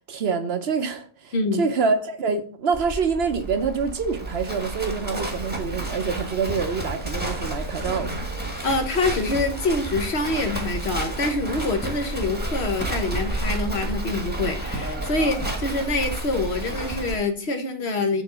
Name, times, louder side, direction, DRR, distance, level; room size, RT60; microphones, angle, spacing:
voice 1, 0.1-8.1, right 5 dB, 55° right, 1.0 m, -26 dB
voice 2, 1.3-1.7 8.6-18.2, left 2 dB, 55° left, 1.2 m, -25 dB
Livestock farm animals working animals, 2.7-17.2, right 1 dB, 10° right, 1.1 m, -30 dB
6.7 x 3.6 x 6.1 m
omnidirectional pair, 1.4 m